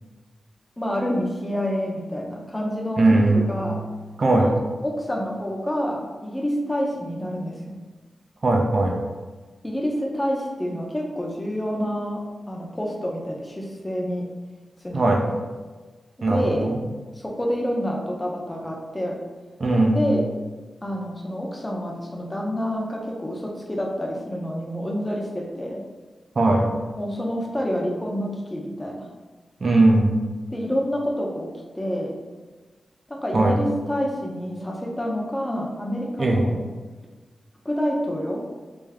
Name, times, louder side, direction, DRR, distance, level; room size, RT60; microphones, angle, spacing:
voice 1, 0.8-3.8 4.3-4.5 4.8-7.7 9.6-14.3 14.8-15.3 16.2-16.7 17.2-19.2 19.9-20.2 20.8-25.8 26.9-29.1 30.5-32.2 33.1-36.6 37.6-38.4, equal, 15° left, -1 dB, 0.6 m, -28 dB
voice 2, 3.0-3.7 4.2-4.5 8.4-9.0 14.9-15.3 16.2-16.8 19.6-20.1 26.4-26.7 29.6-30.2 33.3-33.6 36.2-36.5, right 2 dB, 50° right, 0 dB, 0.5 m, -19 dB
3.4 x 2.6 x 3.4 m, 1.3 s
wide cardioid pair, 100°, 0 cm